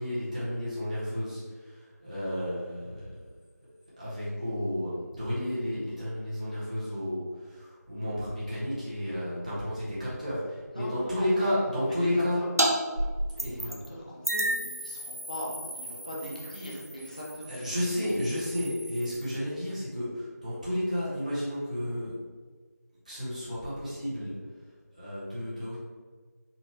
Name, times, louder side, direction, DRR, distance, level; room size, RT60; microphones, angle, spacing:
voice 1, 0.0-3.1 4.0-12.4 13.4-13.7 17.5-22.2 23.0-25.8, left 1 dB, 25° right, -10 dB, 1.3 m, -32 dB
voice 2, 10.7-11.5 11.7-12.5 13.3-17.6 18.0-18.2, equal, 25° left, -6 dB, 0.9 m, -40 dB
sound 1, 12.6-12.7 13.0-13.9 14.2-19.3, right 1 dB, 60° right, 0.7 m, -33 dB
4.3 x 2.7 x 4.1 m, 1.5 s
figure-of-eight pair, 175°, 9 cm